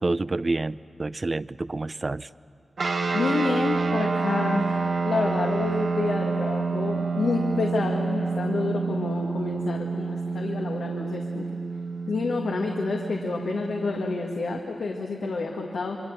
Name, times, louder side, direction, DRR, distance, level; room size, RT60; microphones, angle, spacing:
voice 1, 0.0-2.3, right 2 dB, 40° right, 17 dB, 0.5 m, -28 dB
sound 1, 2.8-14.6, right 4 dB, 75° right, 1.7 m, -28 dB
voice 2, 3.1-11.5 12.1-16.0, left 3 dB, 90° left, 0 dB, 1.6 m, -28 dB
27.0 x 23.5 x 6.7 m, 2.4 s
cardioid pair, 65°, 0 cm